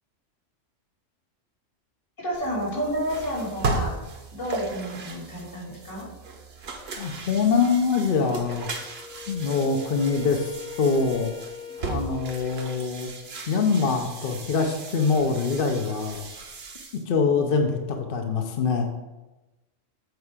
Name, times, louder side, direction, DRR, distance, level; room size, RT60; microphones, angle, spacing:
voice 1, 2.2-3.9 4.3-6.1, equal, 75° left, -7 dB, 3.1 m, -30 dB
sound 1, 2.3-17.0, right 3 dB, 55° right, 1.1 m, -36 dB
voice 2, 7.0-8.7 9.3-11.3 11.8-13.1 13.5-16.2 17.1-18.9, left 5 dB, 50° left, 4 dB, 0.8 m, -24 dB
Wind instrument woodwind instrument, 8.6-13.0, left 8 dB, 5° left, 0.4 m, -41 dB
8.0 x 4.7 x 4.8 m, 1.1 s
omnidirectional pair, 1.3 m